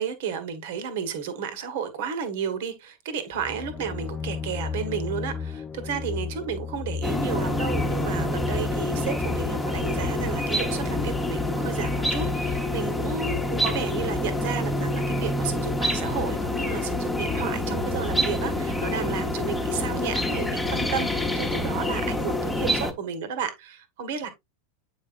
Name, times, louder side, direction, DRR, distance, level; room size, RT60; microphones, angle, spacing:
voice 1, 0.0-24.3, right 7 dB, 55° right, 1.5 m, -32 dB
sound 1, 3.3-11.0, left 6 dB, 20° left, 0.6 m, -35 dB
sound 2, 7.0-22.9, left 1 dB, 5° left, 1.2 m, -27 dB
8.6 x 5.4 x 2.5 m
figure-of-eight pair, 85°, 0 cm